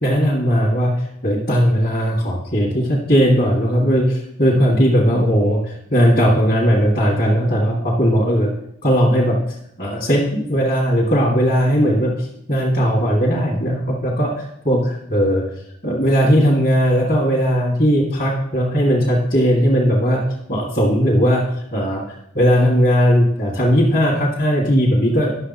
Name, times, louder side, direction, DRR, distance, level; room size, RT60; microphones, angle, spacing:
voice 1, 0.0-8.5 8.8-9.4 9.8-15.4 15.8-20.2 20.5-21.4 21.7-22.0 22.4-25.3, equal, 45° left, -5 dB, 1.7 m, -17 dB
10.5 x 6.7 x 4.2 m, 0.75 s
head